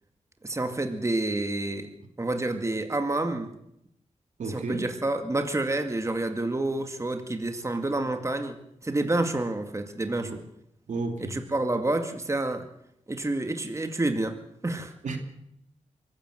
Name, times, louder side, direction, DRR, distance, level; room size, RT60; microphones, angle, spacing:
voice 1, 0.4-1.9 2.2-3.5 4.4-10.4 11.2-12.7 13.1-14.9, right 2 dB, 25° right, 6 dB, 2.1 m, -29 dB
voice 2, 4.4-4.8 10.2-10.4 10.9-11.4 15.0-15.2, right 3 dB, 75° right, 5 dB, 2.9 m, -32 dB
23.5 x 14.0 x 8.0 m, 0.79 s
cardioid pair, 75°, 12 cm